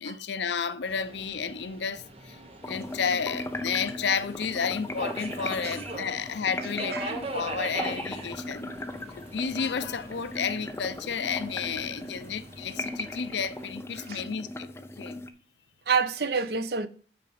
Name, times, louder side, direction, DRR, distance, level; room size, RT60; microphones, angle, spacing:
voice 1, 0.0-2.4 2.7-8.7 9.2-15.2, left 6 dB, 75° left, 0.6 m, -32 dB
Subway metro underground, 0.8-13.7, right 2 dB, 35° right, 1.2 m, -42 dB
sound 1, 2.6-15.3, left 1 dB, 15° left, 0.5 m, -38 dB
voice 2, 6.6-7.2 14.0-14.3 15.9-16.9, right 5 dB, 60° right, 0.6 m, -29 dB
6.0 x 4.9 x 6.2 m
head